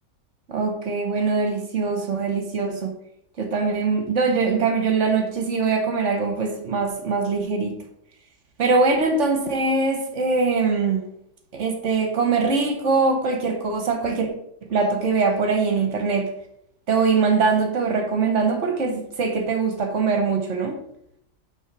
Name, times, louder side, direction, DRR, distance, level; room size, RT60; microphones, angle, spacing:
voice 1, 0.5-2.9 3.4-7.8 8.6-11.0 11.5-14.3 14.7-16.3 16.9-20.8, right 4 dB, 50° right, 4 dB, 1.2 m, -22 dB
6.3 x 3.6 x 5.9 m, 0.73 s
omnidirectional pair, 1.8 m